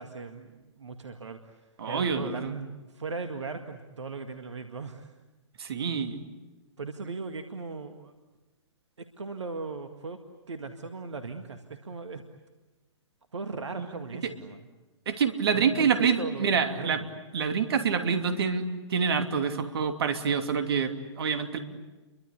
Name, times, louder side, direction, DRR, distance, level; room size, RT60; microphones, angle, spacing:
voice 1, 0.0-1.6 1.9-5.1 6.8-8.1 9.0-10.2 10.5-12.2 13.3-14.7 15.5-15.9 16.2-17.1, right 4 dB, 70° right, 7 dB, 1.9 m, -38 dB
voice 2, 1.8-2.5 5.6-6.2 13.8-13.9 15.1-17.0 17.3-21.6, right 6 dB, 55° right, 8 dB, 2.8 m, -27 dB
30.0 x 24.0 x 8.3 m, 1.2 s
figure-of-eight pair, 120°, 15 cm